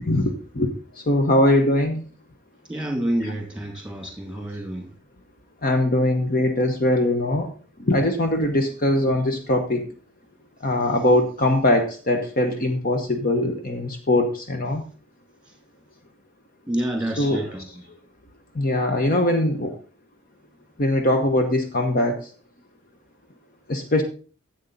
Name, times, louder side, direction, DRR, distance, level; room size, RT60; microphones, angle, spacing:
voice 1, 0.0-0.7 1.0-2.0 3.2-3.3 5.6-7.5 7.8-9.9 10.6-14.8 17.2-17.6 18.5-19.7 20.8-22.3 23.7-24.0, left 1 dB, 45° left, 5 dB, 0.9 m, -21 dB
voice 2, 2.7-4.8 16.7-17.6, right 1 dB, 5° right, 2 dB, 2.4 m, -28 dB
11.0 x 7.9 x 3.9 m, 0.38 s
head